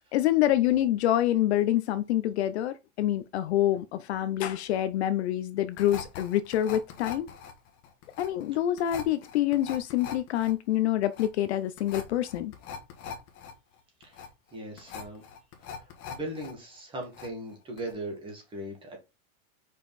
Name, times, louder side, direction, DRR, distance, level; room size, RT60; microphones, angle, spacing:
voice 1, 0.1-7.3 8.2-12.5, left 12 dB, 50° left, 0.6 m, -26 dB
sound 1, 5.8-16.5 16.8-17.5 17.8-17.9, left 7 dB, 30° left, 1.4 m, -42 dB
voice 2, 14.5-15.2 15.8-19.0, right 1 dB, 10° right, 1.9 m, -39 dB
5.4 x 5.1 x 4.1 m
supercardioid pair, 180°, 41 cm